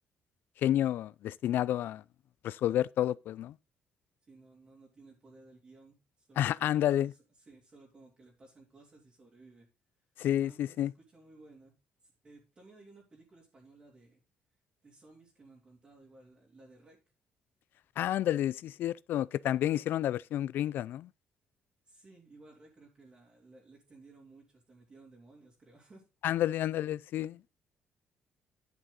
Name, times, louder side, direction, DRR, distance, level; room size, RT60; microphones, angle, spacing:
voice 1, 0.6-2.0 2.4-3.6 6.4-7.1 10.2-10.9 18.0-21.1 26.2-27.6, left 12 dB, 70° left, 0.4 m, -30 dB
voice 2, 4.3-9.7 10.4-11.7 12.0-14.2 14.8-17.0 21.8-26.1, right 3 dB, 30° right, 3.2 m, -57 dB
11.0 x 6.4 x 4.0 m
cardioid pair, 130°, 4 cm